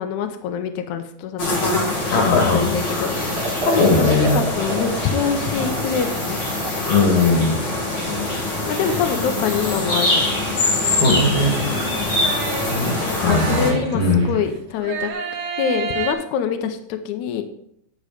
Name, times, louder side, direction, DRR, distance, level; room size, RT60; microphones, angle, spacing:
voice 1, 0.0-1.4 2.2-3.3 4.0-6.4 8.7-10.4 13.0-15.1 15.6-17.4, left 7 dB, 75° left, 7 dB, 1.9 m, -25 dB
sound 1, 1.4-13.7, left 2 dB, 40° left, 2.2 m, -24 dB
voice 2, 2.1-2.7 3.7-4.4 6.9-7.6 11.0-11.5 12.7-12.9 13.2-14.3, left 3 dB, 90° left, 2 dB, 3.4 m, -18 dB
Liquid, 3.3-14.5, right 2 dB, 50° right, 2.5 m, -33 dB
sound 2, 8.8-9.7 11.5-14.4 14.8-16.1, right 6 dB, 85° right, 2.7 m, -30 dB
11.5 x 4.0 x 4.9 m, 0.73 s
omnidirectional pair, 3.8 m